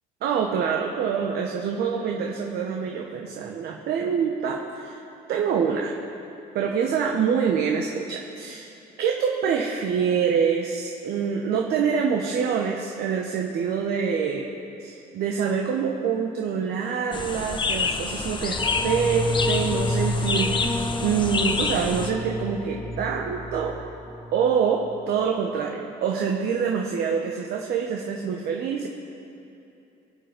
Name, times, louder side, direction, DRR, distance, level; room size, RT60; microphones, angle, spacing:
voice 1, 0.2-5.0 5.3-6.0 6.5-8.7 9.0-14.5 14.8-20.7 21.0-23.8 24.3-28.9, right 6 dB, 70° right, 1 dB, 1.2 m, -25 dB
sound 1, 17.1-22.1, left 4 dB, 30° left, 1.0 m, -28 dB
sound 2, 18.6-24.6 24.9-25.0, left 2 dB, 5° left, 1.2 m, -29 dB
23.5 x 8.1 x 5.3 m, 2.8 s
cardioid pair, 110°, 17 cm